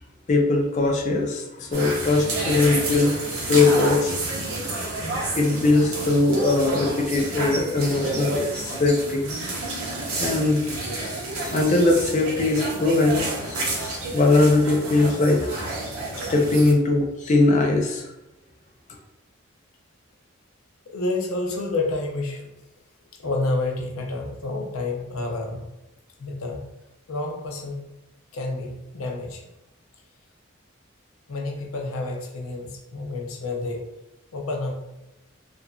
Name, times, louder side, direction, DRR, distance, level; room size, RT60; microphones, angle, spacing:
voice 1, 0.3-4.2 5.4-9.3 10.2-10.6 11.1-15.6 16.3-18.1, left 2 dB, 35° left, 1 dB, 0.3 m, -21 dB
sound 1, 1.7-16.7, right 2 dB, 80° right, 0.7 m, -30 dB
voice 2, 20.9-22.5 23.2-25.7 26.2-26.6 27.1-27.8 28.3-29.5 31.3-33.9 34.3-34.9, left 2 dB, 85° left, 2 dB, 0.5 m, -29 dB
2.9 x 2.4 x 2.2 m, 0.94 s
head